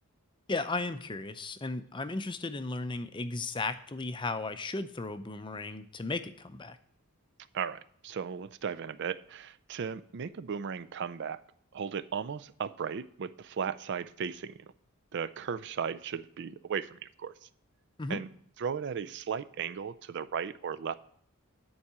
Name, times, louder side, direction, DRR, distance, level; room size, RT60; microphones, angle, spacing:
voice 1, 0.5-6.8 18.0-18.2, left 3 dB, 20° left, 10 dB, 0.5 m, -35 dB
voice 2, 7.5-11.4 11.7-14.5 15.1-17.5 18.1-18.3 18.6-21.0, right 6 dB, 50° right, 13 dB, 0.4 m, -36 dB
10.0 x 4.7 x 7.3 m, 0.62 s
head